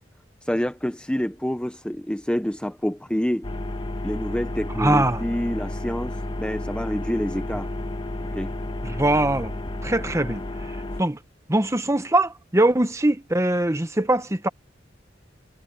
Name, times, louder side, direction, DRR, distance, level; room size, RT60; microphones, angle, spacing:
voice 1, 0.4-3.5 4.0-7.7 8.3-8.5, equal, 5° left, 0.7 m, -27 dB
sound 1, 3.4-11.0, left 1 dB, 30° left, 1.2 m, -32 dB
voice 2, 4.8-5.2 8.8-9.5 9.8-10.4 11.0-11.2 11.5-14.5, right 1 dB, 15° right, 1.2 m, -22 dB
head